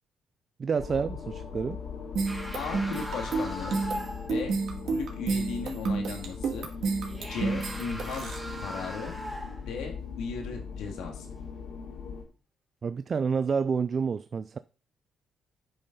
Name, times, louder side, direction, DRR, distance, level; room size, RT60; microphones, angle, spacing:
voice 1, 0.6-1.8 12.8-14.6, right 5 dB, 45° right, 0.3 m, -29 dB
sound 1, 0.8-12.2, left 5 dB, 65° left, 2.9 m, -40 dB
sound 2, 2.2-8.4, right 4 dB, 65° right, 2.2 m, -30 dB
sound 3, 2.3-4.3 7.0-9.7, equal, 5° left, 2.6 m, -39 dB
voice 2, 2.5-3.8 4.3-4.5 4.9-6.7 7.2-9.2 9.6-11.3, left 5 dB, 90° left, 2.4 m, -37 dB
9.0 x 5.4 x 5.4 m
cardioid pair, 90°, 0 cm